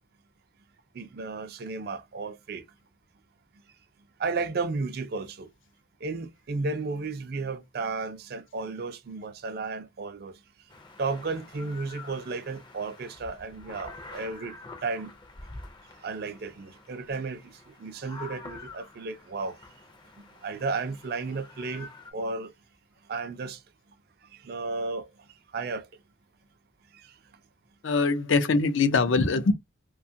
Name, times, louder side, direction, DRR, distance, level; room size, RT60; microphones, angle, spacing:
voice 1, 0.9-2.6 4.2-5.5 6.0-10.4 11.0-15.1 16.0-19.6 20.4-22.5 23.1-23.6 24.3-25.1 25.5-25.9 26.9-27.1, right 3 dB, 50° right, 0.4 m, -33 dB
sound 1, 10.7-22.1, left 3 dB, 25° left, 0.4 m, -47 dB
voice 2, 27.8-29.5, left 4 dB, 75° left, 0.5 m, -23 dB
2.8 x 2.3 x 2.6 m
head